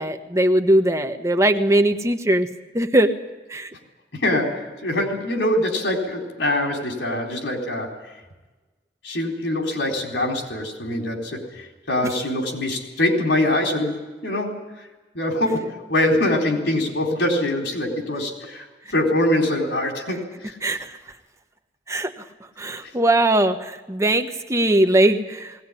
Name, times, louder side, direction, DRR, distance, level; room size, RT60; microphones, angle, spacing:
voice 1, 0.0-2.5 2.7-3.1 3.5-3.7 20.6-21.0 21.9-22.1 22.6-25.7, right 1 dB, 15° right, 7 dB, 1.2 m, -20 dB
voice 2, 4.1-7.9 9.0-14.6 15.1-18.7 18.9-20.6, left 1 dB, 80° left, 2 dB, 4.1 m, -23 dB
20.0 x 18.0 x 9.9 m, 1.2 s
head